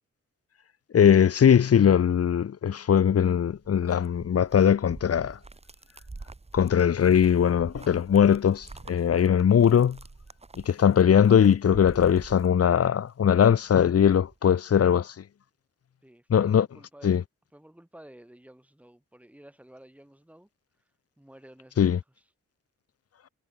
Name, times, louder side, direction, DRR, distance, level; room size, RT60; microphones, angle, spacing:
voice 1, 0.9-5.4 6.5-10.0 10.6-15.1 16.3-16.7 17.0-17.2 21.8-22.0, left 8 dB, 50° left, 1.1 m, -20 dB
sound 1, 3.2-13.1 13.4-14.3, right 3 dB, 20° right, 4.9 m, -47 dB
voice 2, 16.0-17.2 17.5-20.5 21.2-22.0, right 1 dB, 5° right, 8.0 m, -52 dB
wide cardioid pair, 165°, 30 cm